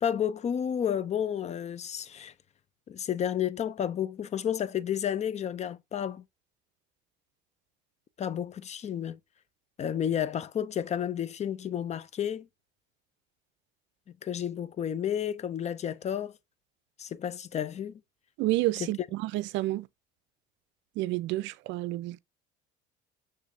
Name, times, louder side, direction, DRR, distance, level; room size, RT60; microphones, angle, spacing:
voice 1, 0.0-2.3 2.9-6.2 8.2-9.2 9.8-12.5 14.2-16.3 17.0-18.0 18.8-18.9, left 9 dB, 35° left, 0.5 m, -31 dB
voice 2, 18.4-19.9 21.0-22.2, right 17 dB, 65° right, 0.5 m, -30 dB
6.3 x 3.2 x 2.6 m
supercardioid pair, 90°, 21 cm